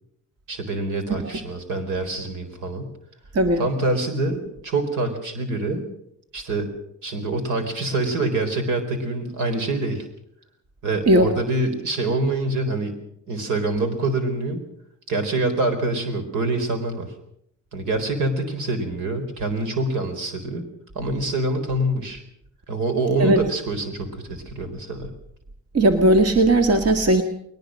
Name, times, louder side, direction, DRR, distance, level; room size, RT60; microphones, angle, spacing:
voice 1, 0.5-2.9 3.6-5.8 6.3-6.7 7.0-10.1 10.8-12.9 13.3-14.6 15.1-17.1 17.7-20.6 20.9-22.2 22.7-25.1, right 2 dB, 90° right, 7 dB, 4.2 m, -25 dB
voice 2, 3.3-3.6 11.1-11.3 23.2-23.4 25.7-27.2, right 1 dB, 55° right, 6 dB, 1.9 m, -17 dB
21.0 x 19.5 x 6.5 m, 0.74 s
cardioid pair, 90°, 30 cm